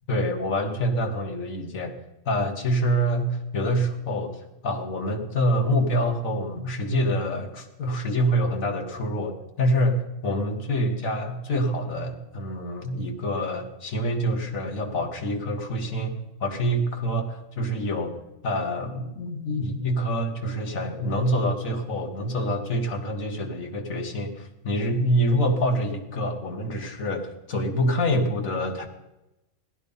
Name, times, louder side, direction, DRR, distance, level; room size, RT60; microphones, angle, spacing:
voice 1, 0.1-1.9 2.3-18.1 18.4-28.9, equal, 90° left, 3 dB, 1.8 m, -26 dB
16.0 x 11.5 x 5.4 m, 0.93 s
omnidirectional pair, 1.4 m